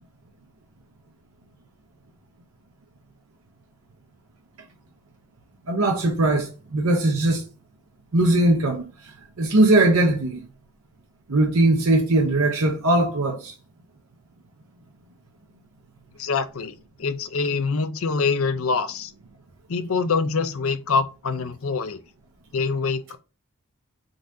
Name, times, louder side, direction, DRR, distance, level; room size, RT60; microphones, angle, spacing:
voice 1, 5.7-7.4 8.1-8.9 9.4-10.4 11.3-13.5, right 2 dB, 70° right, 0.8 m, -20 dB
voice 2, 16.2-19.1 19.7-22.0 22.5-23.2, left 4 dB, 70° left, 0.6 m, -25 dB
3.9 x 2.7 x 4.7 m
head